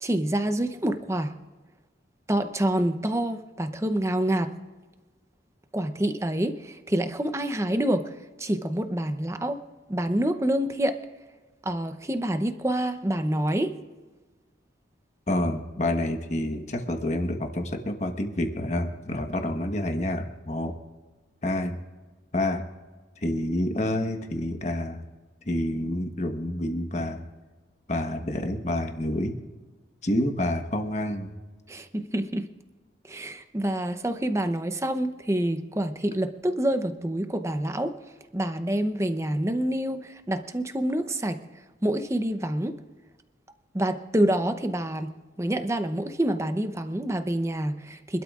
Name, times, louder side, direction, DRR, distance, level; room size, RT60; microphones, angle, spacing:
voice 1, 0.0-1.3 2.3-4.5 5.7-8.1 8.4-9.6 9.9-11.0 11.6-13.7 31.7-32.5 33.0-37.9 38.3-41.4 41.8-42.8 43.7-45.1 45.4-48.2, right 1 dB, 15° right, 9 dB, 0.7 m, -27 dB
voice 2, 15.3-20.7 21.4-21.8 22.3-22.6 23.2-25.0 25.4-27.2 27.9-29.4 30.0-31.3, left 1 dB, 40° left, 5 dB, 1.2 m, -28 dB
26.0 x 12.5 x 2.4 m, 1.3 s
head